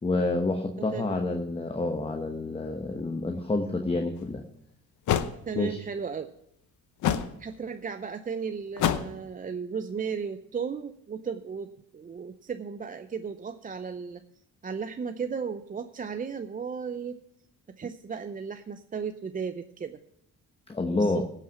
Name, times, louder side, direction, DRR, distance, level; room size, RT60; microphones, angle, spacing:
voice 1, 0.0-4.4 5.5-5.8 20.7-21.2, left 2 dB, 20° left, 4 dB, 1.0 m, -28 dB
voice 2, 0.9-1.3 5.5-6.3 7.4-14.2 14.6-17.2 17.7-20.0 20.9-21.2, right 6 dB, 30° right, 8 dB, 0.5 m, -35 dB
sound 1, 4.2-4.3 5.1-5.3 7.0-7.3 8.8-9.2, left 9 dB, 75° left, 0.9 m, -25 dB
17.0 x 5.8 x 5.9 m, 0.75 s
cardioid pair, 90°, 30 cm